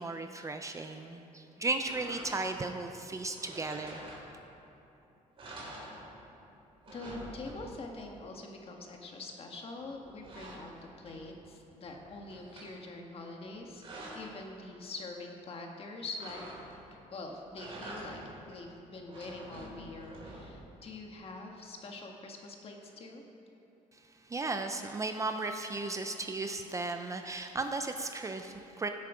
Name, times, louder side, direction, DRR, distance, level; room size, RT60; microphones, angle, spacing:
voice 1, 0.0-4.0 23.9-24.0 24.3-28.9, right 3 dB, 20° right, 6 dB, 0.5 m, -35 dB
sound 1, 1.8-2.7 3.3-4.6 5.0-5.1 5.4-6.4 6.7-7.9 9.6-11.4 11.8-12.7 13.4-14.4 16.2-17.0 17.4-18.5 18.9-20.7, right 1 dB, 40° right, 3.1 m, -47 dB
voice 2, 6.9-13.8 14.1-16.5 17.1-18.2 18.5-23.2, left 2 dB, 45° left, 2 dB, 1.6 m, -44 dB
16.5 x 8.2 x 5.0 m, 2.9 s
cardioid pair, 140°, 14 cm